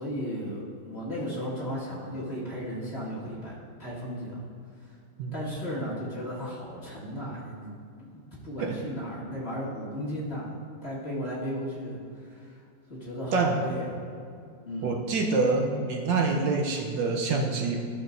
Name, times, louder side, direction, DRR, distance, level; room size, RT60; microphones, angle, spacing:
voice 1, 0.0-3.5 3.8-4.5 4.8-4.9 5.3-7.7 8.1-12.6 12.9-14.0 14.6-14.9, equal, 35° left, -8 dB, 2.0 m, -35 dB
voice 2, 14.8-17.8, right 3 dB, 75° right, 2 dB, 1.4 m, -26 dB
13.5 x 7.0 x 2.6 m, 2.3 s
omnidirectional pair, 2.1 m